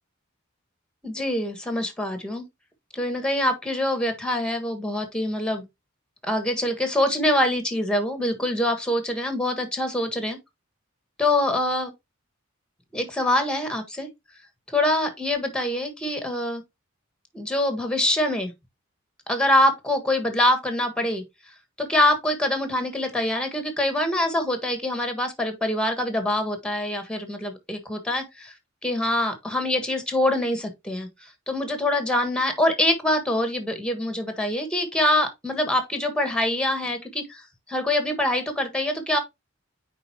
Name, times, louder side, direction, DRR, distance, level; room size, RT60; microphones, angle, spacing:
voice 1, 1.0-2.4 2.9-5.6 6.2-10.4 11.2-11.9 12.9-14.1 14.7-16.6 17.3-18.5 19.3-21.2 21.8-28.5 28.8-31.1 31.5-37.4 37.7-39.2, left 1 dB, 5° left, 1.6 m, -24 dB
9.2 x 4.1 x 2.8 m
head